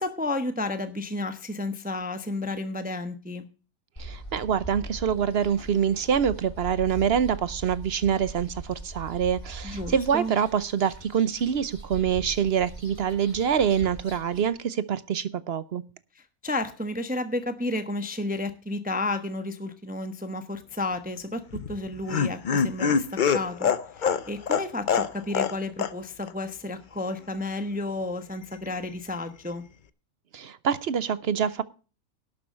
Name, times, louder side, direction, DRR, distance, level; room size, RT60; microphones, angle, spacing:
voice 1, 0.0-3.5 9.6-10.3 16.1-23.7 24.0-29.6, left 2 dB, 5° right, 9 dB, 0.8 m, -32 dB
sound 1, 4.0-14.5, right 1 dB, 20° left, 4.1 m, -41 dB
voice 2, 4.0-15.8 30.3-31.6, right 8 dB, 55° right, 16 dB, 0.8 m, -25 dB
Laughter, 21.5-25.5 25.8-25.9 26.2-26.3, left 6 dB, 55° left, 0.5 m, -24 dB
12.0 x 7.1 x 6.3 m, 0.35 s
omnidirectional pair, 1.6 m